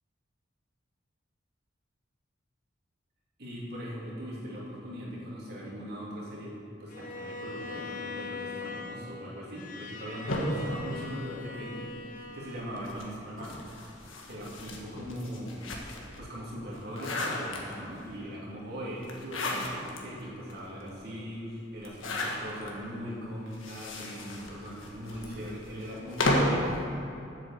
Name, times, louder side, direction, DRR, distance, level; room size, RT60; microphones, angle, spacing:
voice 1, 3.4-6.5 6.8-11.8 12.3-13.6 14.3-15.6 16.2-26.8, equal, 55° right, -5 dB, 2.7 m, -40 dB
Bowed string instrument, 6.9-13.1, left 3 dB, 45° left, 0.8 m, -41 dB
sound 1, 10.3-11.9 12.7-16.2 16.6-18.0 19.0-20.0 20.5-20.6 20.8-20.9 21.8-22.7 23.5-26.7, left 1 dB, 90° left, 1.5 m, -33 dB
8.0 x 7.5 x 7.4 m, 2.7 s
head